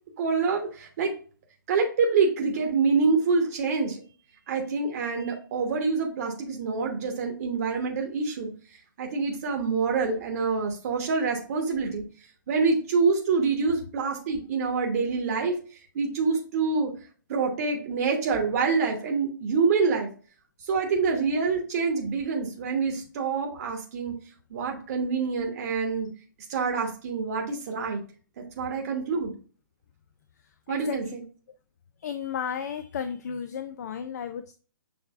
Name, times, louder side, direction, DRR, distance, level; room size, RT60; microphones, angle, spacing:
voice 1, 0.2-1.1 1.7-4.0 4.5-8.5 9.0-12.0 12.5-15.6 15.9-16.9 17.3-20.1 20.7-24.1 24.5-26.1 26.5-28.0 28.4-29.3 30.7-31.2, right 4 dB, 45° right, 2 dB, 1.1 m, -26 dB
voice 2, 32.0-34.5, left 7 dB, 55° left, 10 dB, 0.4 m, -33 dB
6.9 x 3.2 x 2.3 m, 0.39 s
figure-of-eight pair, 130°, 11 cm